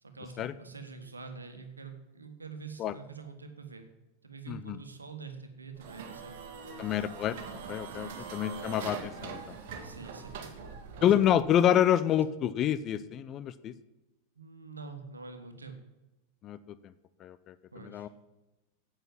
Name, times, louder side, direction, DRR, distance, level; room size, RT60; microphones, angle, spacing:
voice 1, 0.0-3.9 4.2-6.8 8.0-8.4 9.8-11.1 14.3-15.8 17.7-18.1, right 4 dB, 75° right, 7 dB, 1.6 m, -46 dB
voice 2, 4.5-4.8 6.8-7.4 7.7-9.6 11.0-13.7 16.4-16.6 17.2-17.5 17.8-18.1, left 10 dB, 30° left, 15 dB, 0.6 m, -27 dB
sound 1, 5.8-11.6, right 6 dB, 50° right, 1.9 m, -43 dB
9.2 x 8.2 x 7.2 m, 1.0 s
figure-of-eight pair, 90°, 0 cm